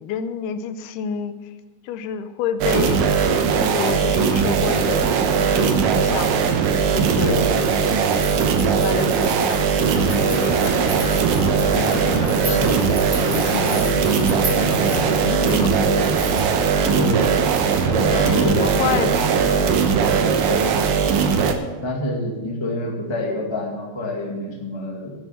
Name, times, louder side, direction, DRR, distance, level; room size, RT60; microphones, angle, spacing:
voice 1, 0.0-1.4 1.8-3.0 3.5-6.4 6.8-7.9 8.4-12.9 13.3-16.2 18.0-20.3, left 7 dB, 85° left, 10 dB, 2.6 m, -30 dB
sound 1, 2.6-21.5, right 6 dB, 70° right, 2.3 m, -19 dB
voice 2, 7.2-7.5 13.6-13.9 15.3-15.4 16.9-17.4 17.8-18.8 19.2-19.3 20.5-20.8 21.8-25.1, left 1 dB, 20° left, -1 dB, 0.7 m, -27 dB
sound 2, 8.1-16.5, right 1 dB, 90° right, 0.5 m, -35 dB
sound 3, 9.9-15.1, left 2 dB, 65° left, 2.6 m, -29 dB
11.5 x 7.4 x 7.6 m, 1.3 s
omnidirectional pair, 4.6 m